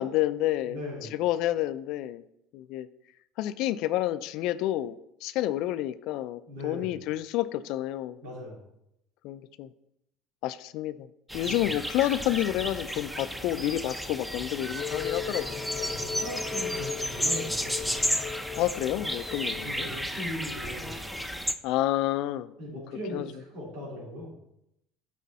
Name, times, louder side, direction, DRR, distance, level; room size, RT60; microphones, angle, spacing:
voice 1, 0.0-0.8 1.1-2.2 2.5-2.9 3.4-5.0 5.2-8.2 9.2-9.7 10.4-11.1 11.3-15.6 18.6-19.9 21.6-22.5 23.1-23.3, left 14 dB, 65° left, 13 dB, 0.3 m, -29 dB
voice 2, 0.7-1.2 6.5-6.9 8.2-8.7 11.4-11.7 15.7-18.1 19.6-21.3 22.6-24.3, left 1 dB, 75° right, -6 dB, 3.1 m, -39 dB
sound 1, 11.3-21.5, equal, ahead, 0.7 m, -33 dB
sound 2, 14.8-19.8, left 7 dB, 50° left, 0.8 m, -37 dB
8.4 x 4.6 x 4.1 m, 0.80 s
hypercardioid pair, 85°, 0 cm